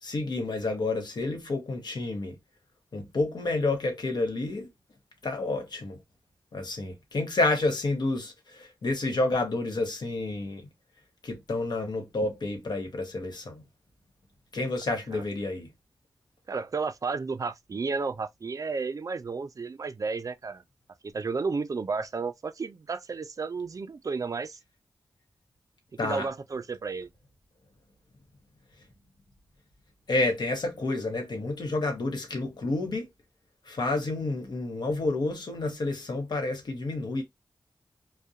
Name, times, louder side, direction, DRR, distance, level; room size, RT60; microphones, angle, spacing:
voice 1, 0.0-2.4 2.9-4.7 5.2-6.0 6.5-10.7 11.2-13.6 14.5-15.7 26.0-26.3 30.1-33.1 33.7-37.2, left 2 dB, 75° left, 0.8 m, -29 dB
voice 2, 16.5-20.6 21.0-24.6 26.0-27.1, right 4 dB, 50° right, 0.4 m, -32 dB
2.3 x 2.1 x 2.6 m
cardioid pair, 45°, 7 cm